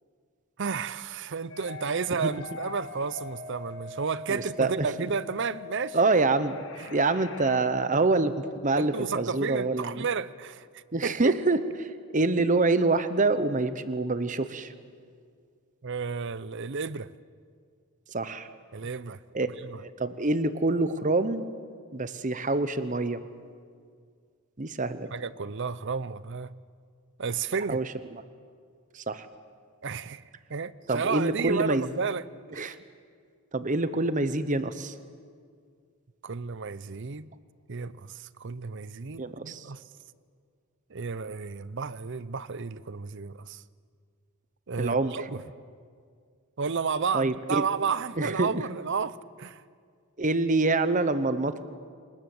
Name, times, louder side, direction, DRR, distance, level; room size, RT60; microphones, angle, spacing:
voice 1, 0.6-6.0 6.8-6.9 8.7-11.3 15.8-17.1 18.7-19.8 25.1-26.5 27.2-27.8 29.8-30.2 30.5-32.2 32.5-32.8 36.2-37.3 37.7-39.8 40.9-43.6 44.7-45.4 46.6-49.6, right 5 dB, 55° right, 17 dB, 0.6 m, -32 dB
sound 1, 1.5-7.6, left 4 dB, 60° left, 1.7 m, -43 dB
voice 2, 4.3-5.1 5.9-6.6 6.9-10.1 10.9-14.7 18.1-18.5 19.3-19.5 19.8-21.4 21.9-23.2 24.6-25.1 27.7-27.8 28.9-29.3 30.9-31.9 32.6-32.7 33.5-34.9 39.2-39.7 44.8-45.1 47.1-47.6 48.2-48.6 50.2-51.6, right 3 dB, 35° right, 12 dB, 0.9 m, -26 dB
27.0 x 20.0 x 7.9 m, 2.1 s
head